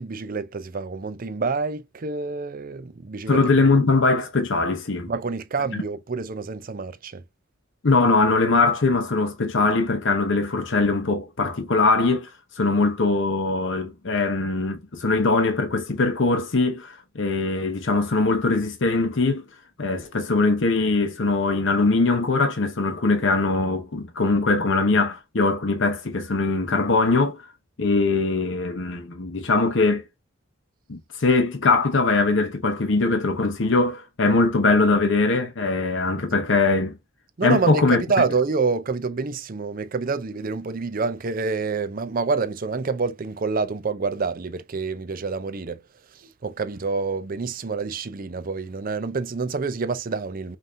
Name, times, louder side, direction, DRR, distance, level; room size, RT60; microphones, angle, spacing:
voice 1, 0.0-3.6 5.1-7.2 37.4-45.8 46.1-50.6, right 4 dB, 45° right, 0.5 m, -27 dB
voice 2, 3.3-5.1 7.8-12.3 12.6-19.4 19.8-27.4 27.8-30.0 30.9-37.0 37.4-38.0, left 3 dB, 60° left, 0.8 m, -21 dB
5.2 x 2.7 x 2.5 m
head